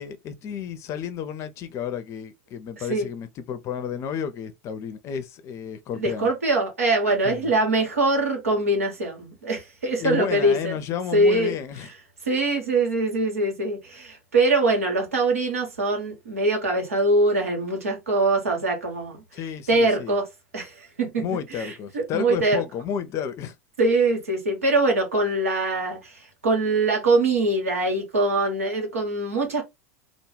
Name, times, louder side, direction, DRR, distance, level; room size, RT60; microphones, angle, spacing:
voice 1, 0.0-6.3 7.2-7.5 10.0-11.9 19.3-20.2 21.2-23.5, left 8 dB, 40° left, 0.5 m, -32 dB
voice 2, 2.8-3.1 6.0-10.8 11.1-11.5 12.2-19.2 19.7-20.3 20.5-21.2 21.5-22.6 23.8-29.6, right 2 dB, 85° right, 0.9 m, -23 dB
2.3 x 2.0 x 3.1 m
hypercardioid pair, 85°, 7 cm